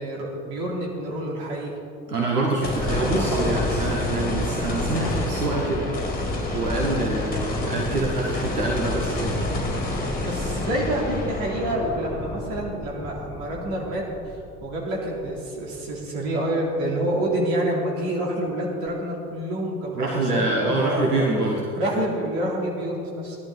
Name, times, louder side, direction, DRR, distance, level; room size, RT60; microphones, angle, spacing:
voice 1, 0.0-1.7 2.6-3.9 7.2-7.3 10.2-14.0 14.3-21.2 21.8-23.4, right 1 dB, 50° right, -2 dB, 3.5 m, -28 dB
voice 2, 2.1-5.9 6.5-9.4 19.9-21.6, right 2 dB, 80° right, -2 dB, 1.6 m, -25 dB
sound 1, 2.6-15.0 15.4-15.5 18.9-19.0, left 2 dB, 20° left, 3.2 m, -28 dB
17.0 x 11.5 x 4.1 m, 2.6 s
figure-of-eight pair, 75°, 46 cm